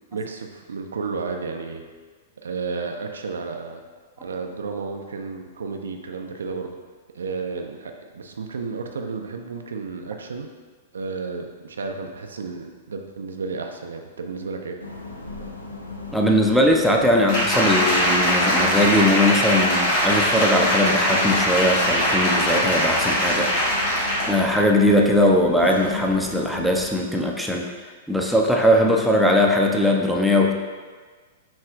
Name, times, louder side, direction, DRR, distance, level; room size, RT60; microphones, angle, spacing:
voice 1, 0.1-1.8 2.4-3.8 4.2-6.7 7.1-10.5 10.9-14.8, right 4 dB, 70° right, 4 dB, 0.3 m, -32 dB
sound 1, 14.8-26.9, left 3 dB, 85° left, 0.4 m, -37 dB
voice 2, 16.1-23.8 24.3-27.6 28.1-30.5, left 1 dB, ahead, -1 dB, 0.4 m, -20 dB
Applause, 17.3-24.4 24.8-25.0, equal, 50° left, 1.2 m, -21 dB
6.0 x 2.4 x 2.3 m, 1.5 s
figure-of-eight pair, 105°, 0 cm